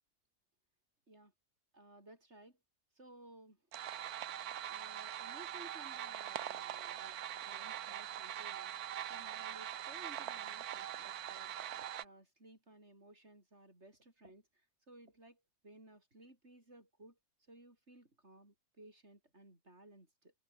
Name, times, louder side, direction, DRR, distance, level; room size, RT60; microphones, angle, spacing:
voice 1, 1.7-2.6 2.9-3.6 4.7-20.3, right 1 dB, 45° right, 7.2 m, -59 dB
sound 1, 3.7-12.1, right 11 dB, 75° right, 1.4 m, -43 dB
omnidirectional pair, 1.7 m